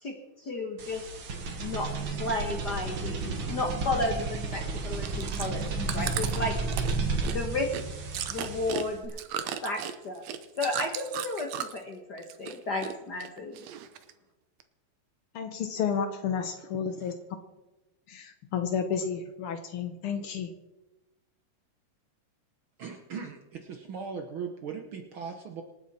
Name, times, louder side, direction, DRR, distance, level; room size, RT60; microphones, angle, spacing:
voice 1, 0.4-1.0 1.6-6.6 7.3-7.7 8.3-9.2 9.6-10.2 10.6-13.6, left 2 dB, 55° left, 3 dB, 1.1 m, -33 dB
sound 1, 0.8-9.1, right 3 dB, 50° right, 2.0 m, -32 dB
Chewing mastication, 4.8-11.9 12.2-12.9 13.2-14.1 14.6-14.7, right 10 dB, 70° right, 1.9 m, -36 dB
voice 2, 15.3-17.1 18.1-20.5, left 7 dB, 85° left, 7 dB, 1.2 m, -31 dB
voice 3, 22.8-25.6, right 6 dB, 85° right, 4 dB, 1.1 m, -39 dB
26.5 x 9.1 x 4.3 m, 1.0 s
omnidirectional pair, 3.8 m